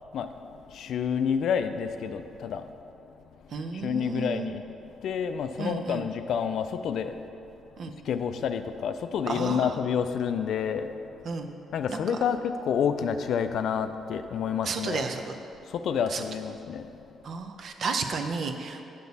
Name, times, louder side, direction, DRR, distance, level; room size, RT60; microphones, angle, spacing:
voice 1, 0.5-2.7 3.7-4.6 5.0-7.2 8.0-11.1 11.7-15.0 15.7-16.9, left 7 dB, 70° left, 9 dB, 0.4 m, -29 dB
voice 2, 3.5-4.5 5.6-6.1 7.8-7.9 9.2-9.7 11.2-11.5 11.9-12.2 14.6-15.4 16.1-16.2 17.2-18.8, right 4 dB, 60° right, 5 dB, 0.6 m, -32 dB
6.9 x 6.6 x 4.1 m, 2.7 s
cardioid pair, 90°, 0 cm